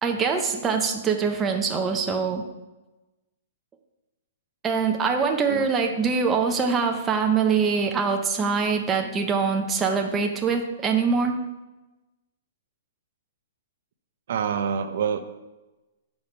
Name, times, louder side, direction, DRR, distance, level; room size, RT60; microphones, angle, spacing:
voice 1, 0.0-2.4 4.6-11.4, right 5 dB, 15° right, 2 dB, 0.5 m, -23 dB
voice 2, 14.3-15.2, right 7 dB, 60° right, 8 dB, 0.7 m, -26 dB
6.9 x 4.5 x 5.5 m, 1.1 s
hypercardioid pair, 165°, 0 cm